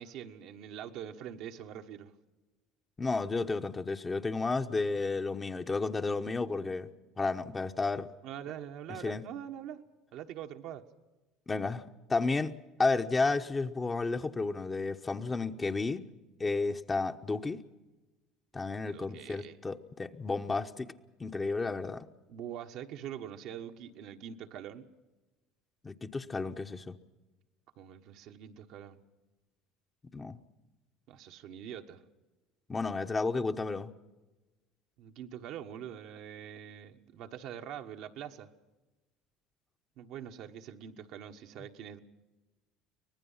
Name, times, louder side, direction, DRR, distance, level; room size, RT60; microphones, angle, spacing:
voice 1, 0.0-2.1 8.2-9.8 10.1-10.8 18.8-19.6 22.3-24.9 27.8-29.0 31.1-32.0 35.0-38.5 40.0-42.0, right 9 dB, 65° right, 4 dB, 1.4 m, -44 dB
voice 2, 3.0-6.9 7.2-8.1 9.0-9.2 11.5-11.8 12.1-16.1 16.4-17.6 18.5-20.9 21.2-22.1 25.8-27.0 30.1-30.4 32.7-33.9, left 3 dB, 20° left, 7 dB, 1.0 m, -32 dB
24.5 x 19.0 x 5.7 m, 1.1 s
supercardioid pair, 95°, 0 cm